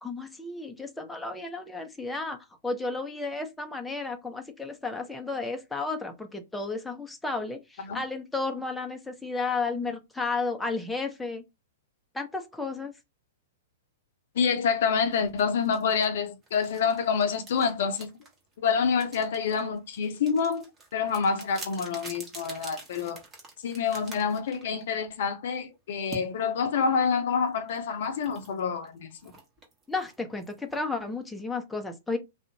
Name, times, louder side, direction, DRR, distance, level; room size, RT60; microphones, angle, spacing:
voice 1, 0.0-11.4 12.1-12.9 29.9-32.2, left 3 dB, 5° left, 0.5 m, -33 dB
voice 2, 14.4-18.1 18.6-23.2 23.6-29.3, left 6 dB, 60° left, 0.5 m, -27 dB
sound 1, 15.1-25.0 26.1-26.3 27.6-31.4, right 3 dB, 20° right, 1.0 m, -47 dB
2.5 x 2.0 x 2.7 m
figure-of-eight pair, 110°, 0 cm